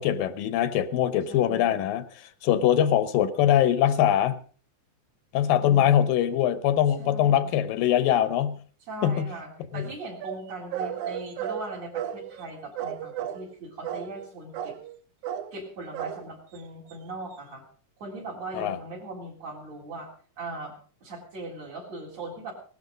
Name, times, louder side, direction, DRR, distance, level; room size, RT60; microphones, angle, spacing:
voice 1, 0.0-4.4 5.3-8.6 9.0-9.3 9.7-9.8 18.5-18.8, left 10 dB, 80° left, 14 dB, 2.6 m, -23 dB
voice 2, 1.3-1.9 5.6-6.0 7.0-7.5 8.9-14.8 15.5-17.6 18.0-20.1 20.4-20.7 21.0-22.5, right 2 dB, 50° right, -2 dB, 4.7 m, -39 dB
sound 1, 10.2-12.5 12.8-13.5 13.8-14.3 14.5-15.0 15.2-15.5 15.9-16.2 16.5-16.6 16.9-17.0, right 10 dB, 70° right, 2.0 m, -34 dB
18.0 x 12.0 x 5.1 m, 0.42 s
omnidirectional pair, 4.1 m